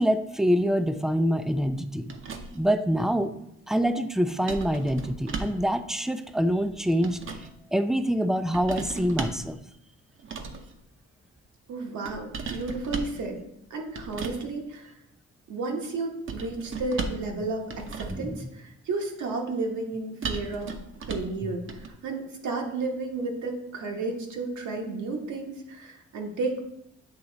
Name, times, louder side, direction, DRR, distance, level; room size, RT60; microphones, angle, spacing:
voice 1, 0.0-2.1 2.5-3.3 3.7-7.2 7.7-9.6 18.1-18.3, equal, ahead, 10 dB, 0.3 m, -25 dB
sound 1, 2.1-2.7 4.5-5.7 6.7-7.5 8.5-9.5 10.2-10.7 12.1-13.2 13.9-14.4 16.3-17.3 17.7-18.3 20.2-21.4 21.7-21.9, right 4 dB, 40° right, 0.7 m, -35 dB
voice 2, 11.7-13.4 13.7-15.0 15.5-20.7 21.1-26.6, right 3 dB, 70° right, 1 dB, 1.2 m, -32 dB
7.9 x 3.0 x 3.9 m, 0.78 s
cardioid pair, 85°, 30 cm